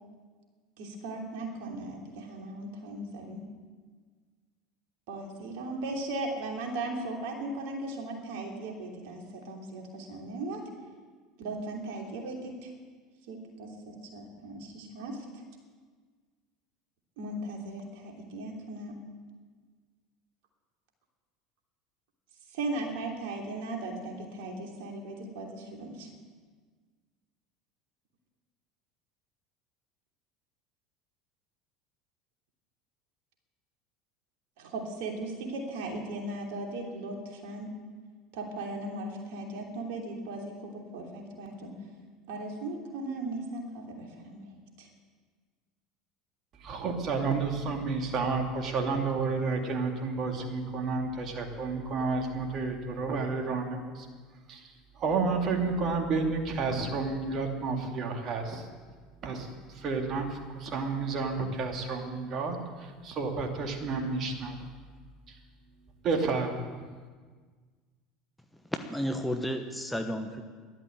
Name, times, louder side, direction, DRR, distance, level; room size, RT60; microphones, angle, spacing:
voice 1, 0.8-3.4 5.1-10.6 11.4-12.7 13.3-15.4 17.2-18.9 22.5-26.1 34.6-37.7 38.3-41.7 42.3-44.9, right 2 dB, 60° right, 1 dB, 3.0 m, -37 dB
voice 2, 46.6-54.1 54.5-54.6 55.0-58.7 59.2-64.5 66.0-66.8, right 4 dB, 40° right, 3 dB, 2.5 m, -31 dB
voice 3, 68.9-70.4, equal, 5° left, 5 dB, 1.1 m, -32 dB
13.5 x 11.5 x 7.9 m, 1.5 s
figure-of-eight pair, 70°, 0 cm